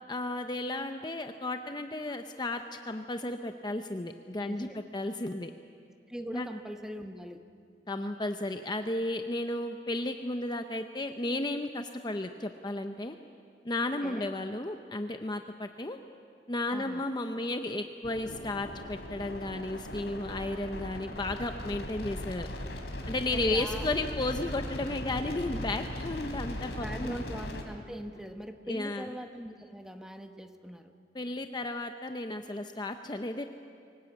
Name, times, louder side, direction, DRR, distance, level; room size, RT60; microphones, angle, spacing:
voice 1, 0.1-5.5 6.3-6.5 7.9-13.2 13.6-16.0 16.5-22.5 23.1-27.2 28.7-29.1 31.1-33.4, left 2 dB, 25° left, 6 dB, 0.7 m, -34 dB
voice 2, 4.4-4.8 6.1-7.4 14.0-14.3 16.7-17.1 23.3-23.9 26.8-30.9, equal, 5° right, 5 dB, 1.1 m, -41 dB
sound 1, 18.0-27.6, left 1 dB, 75° left, 3.1 m, -39 dB
24.0 x 18.5 x 8.4 m, 2.3 s
head